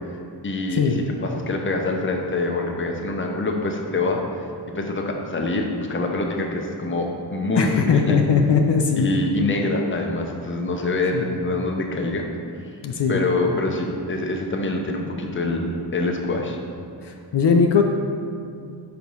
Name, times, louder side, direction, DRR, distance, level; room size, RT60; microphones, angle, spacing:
voice 1, 0.4-4.2 4.7-8.2 9.0-12.3 13.1-16.6, left 2 dB, 30° left, 2 dB, 0.7 m, -25 dB
voice 2, 7.6-9.1 11.1-11.2 12.8-13.2 17.0-17.8, left 5 dB, 65° left, 3 dB, 0.6 m, -19 dB
5.1 x 4.8 x 5.3 m, 2.3 s
wide cardioid pair, 90°, 44 cm